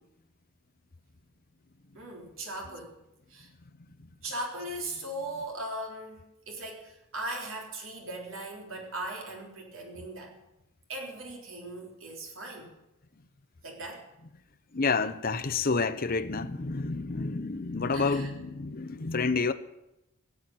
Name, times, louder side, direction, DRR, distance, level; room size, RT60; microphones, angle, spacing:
voice 1, 2.0-2.9 3.3-3.5 4.2-10.3 10.9-12.7 13.6-14.0 17.9-18.3, right 1 dB, 65° right, 3.9 m, -39 dB
voice 2, 14.7-19.5, left 4 dB, 45° left, 0.8 m, -29 dB
17.0 x 7.8 x 9.0 m
head